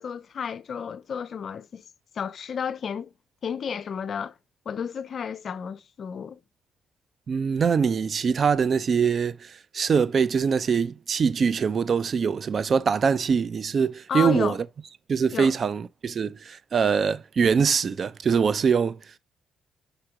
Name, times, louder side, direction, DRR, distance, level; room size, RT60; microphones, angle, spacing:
voice 1, 0.0-1.8 2.1-3.1 3.4-4.3 4.7-6.4 14.1-14.6 15.3-15.6, left 7 dB, 55° left, 0.5 m, -32 dB
voice 2, 7.3-14.6 15.1-19.0, right 6 dB, 45° right, 0.6 m, -23 dB
5.7 x 4.9 x 5.9 m
cardioid pair, 90°, 0 cm